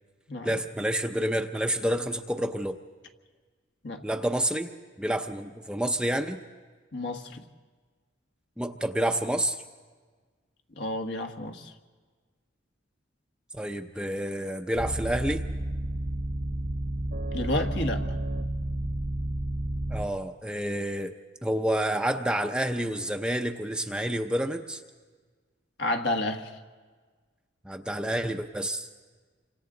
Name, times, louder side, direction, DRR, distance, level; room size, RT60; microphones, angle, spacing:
voice 1, 0.4-2.8 4.0-6.4 8.6-9.6 13.5-15.4 19.9-21.1 21.4-24.8 27.6-28.9, right 1 dB, 5° right, 5 dB, 0.6 m, -29 dB
voice 2, 6.9-7.5 10.8-11.7 17.3-18.0 25.8-26.6, left 1 dB, 60° left, 4 dB, 1.4 m, -31 dB
sound 1, 14.7-20.1, right 1 dB, 55° right, 1.0 m, -31 dB
28.5 x 25.5 x 3.9 m, 1.5 s
head